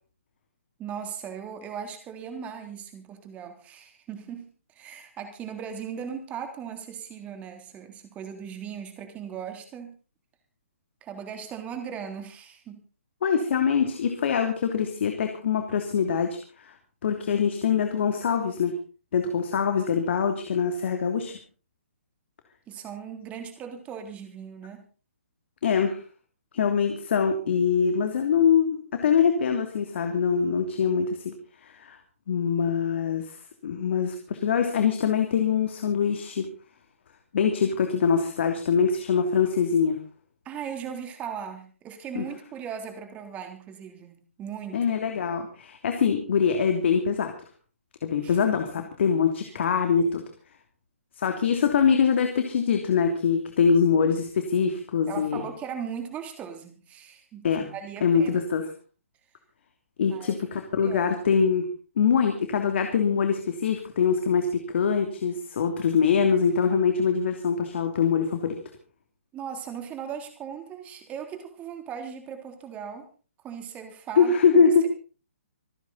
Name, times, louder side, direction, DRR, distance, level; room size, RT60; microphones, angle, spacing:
voice 1, 0.8-10.0 11.0-12.8 22.7-24.8 40.5-44.8 48.2-48.4 55.1-58.4 60.1-60.3 60.8-61.1 69.3-73.1 73.4-74.9, right 7 dB, 20° right, 6 dB, 3.5 m, -38 dB
voice 2, 13.2-16.4 16.6-16.7 17.0-18.8 19.1-21.4 25.6-26.0 26.5-31.3 31.8-32.0 32.3-33.4 33.6-36.5 37.3-40.0 42.1-42.2 44.7-47.3 48.0-50.2 51.2-55.4 57.4-57.7 58.0-58.6 60.0-61.7 62.0-68.6 74.2-74.9, left 6 dB, 55° left, 5 dB, 3.0 m, -23 dB
26.5 x 9.9 x 4.2 m, 0.37 s
hypercardioid pair, 140°, 7 cm